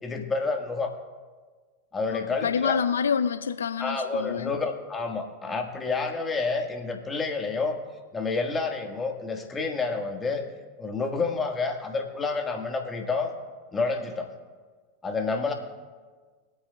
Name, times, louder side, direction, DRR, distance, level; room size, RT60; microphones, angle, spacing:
voice 1, 0.0-0.9 1.9-2.8 3.8-7.8 8.1-10.4 10.8-13.3 13.7-14.3 15.0-15.5, left 4 dB, 20° left, 1.6 m, -29 dB
voice 2, 2.1-4.6, left 7 dB, 85° left, 0.4 m, -27 dB
23.0 x 8.7 x 2.3 m
hypercardioid pair, 95°, 0 cm